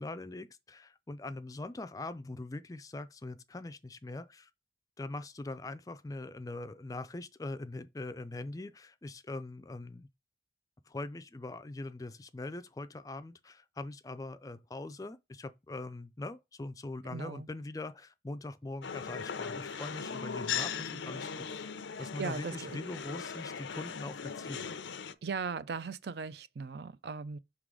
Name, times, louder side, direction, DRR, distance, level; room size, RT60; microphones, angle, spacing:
voice 1, 0.0-4.5 5.0-10.1 10.9-21.5 22.0-24.7, left 2 dB, 20° left, 0.4 m, -42 dB
voice 2, 17.1-17.5 19.7-19.8 22.0-22.8 25.2-27.4, right 5 dB, 65° right, 0.4 m, -38 dB
sound 1, 18.8-25.1, left 6 dB, 90° left, 0.6 m, -39 dB
5.7 x 3.8 x 4.8 m
head